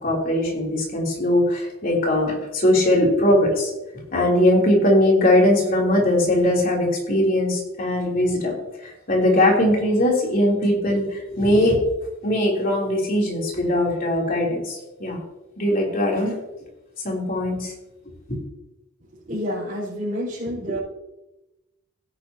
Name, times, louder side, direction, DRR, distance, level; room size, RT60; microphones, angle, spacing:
voice 1, 0.0-8.6 8.8-11.8 12.2-15.2 15.6-16.3 17.0-17.7 18.3-18.4, left 1 dB, 40° left, -2 dB, 3.4 m, -20 dB
voice 2, 19.3-20.8, equal, 40° right, -11 dB, 4.3 m, -28 dB
16.5 x 10.0 x 2.9 m, 0.99 s
head